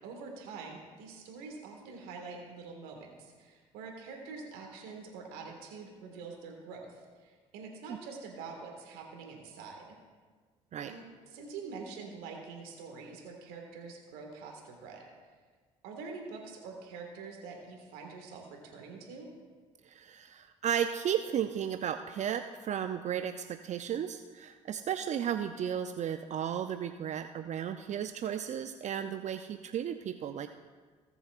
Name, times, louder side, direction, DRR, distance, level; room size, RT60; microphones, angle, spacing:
voice 1, 0.0-10.0 10.9-15.1 15.8-19.3, right 4 dB, 75° right, 1 dB, 1.8 m, -45 dB
voice 2, 19.9-30.5, right 9 dB, 50° right, 9 dB, 0.5 m, -34 dB
18.5 x 6.9 x 2.5 m, 1.5 s
hypercardioid pair, 55°, 16 cm